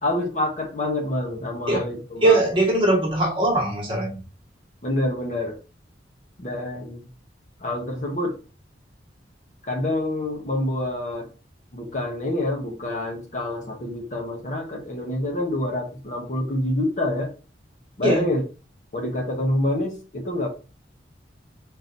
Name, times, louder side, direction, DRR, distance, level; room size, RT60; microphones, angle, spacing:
voice 1, 0.0-2.4 4.8-5.6 6.4-7.1 7.6-8.3 9.7-11.3 11.7-17.3 18.0-18.4 18.9-20.5, left 1 dB, 40° left, 1.0 m, -27 dB
voice 2, 2.2-4.2 18.0-18.3, right 2 dB, 30° right, 1.4 m, -20 dB
3.9 x 2.8 x 3.9 m
head